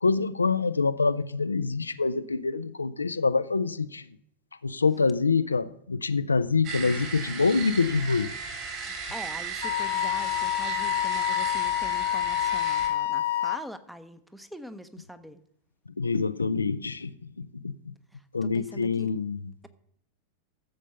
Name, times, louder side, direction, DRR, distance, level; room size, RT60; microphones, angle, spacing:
voice 1, 0.0-4.1 4.6-8.3 16.0-17.7 18.3-19.5, left 4 dB, 75° left, 0.4 m, -26 dB
sound 1, 6.6-12.9, right 5 dB, 40° right, 3.7 m, -36 dB
voice 2, 8.8-15.4 18.1-19.1, equal, ahead, 0.9 m, -44 dB
Wind instrument woodwind instrument, 9.6-13.6, left 13 dB, 55° left, 0.9 m, -27 dB
14.0 x 7.3 x 5.4 m
figure-of-eight pair, 90°, 0 cm